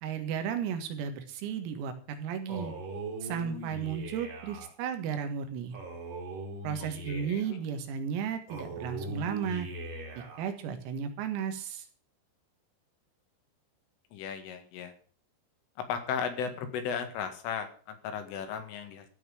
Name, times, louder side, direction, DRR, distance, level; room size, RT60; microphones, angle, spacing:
voice 1, 0.0-2.7 3.2-5.8 6.6-9.7 10.2-11.9, right 7 dB, 90° right, 7 dB, 4.4 m, -34 dB
Male speech man speaking, 2.5-4.7 5.7-7.6 8.5-10.5, right 2 dB, 45° right, 4.4 m, -40 dB
voice 2, 7.1-7.4 14.1-14.9 15.9-19.1, left 7 dB, 75° left, 7 dB, 4.2 m, -35 dB
14.5 x 6.1 x 8.3 m, 0.42 s
omnidirectional pair, 6.0 m